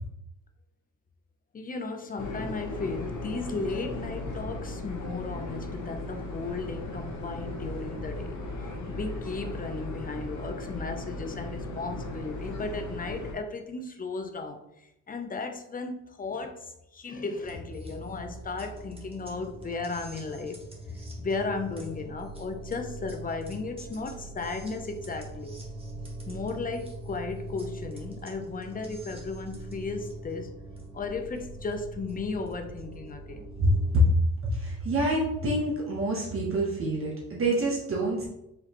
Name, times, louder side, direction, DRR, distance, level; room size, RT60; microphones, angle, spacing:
voice 1, 1.5-8.4 8.9-14.6 15.1-25.5 26.3-30.5 30.9-33.5, left 3 dB, 25° left, 6 dB, 0.6 m, -35 dB
sound 1, 2.2-13.3, left 2 dB, 60° left, 1.1 m, -37 dB
sound 2, 17.4-34.0, right 1 dB, 15° right, 1.3 m, -42 dB
voice 2, 34.4-38.3, equal, 40° right, -3 dB, 1.2 m, -26 dB
5.1 x 3.1 x 3.0 m, 0.84 s
cardioid pair, 95°, 34 cm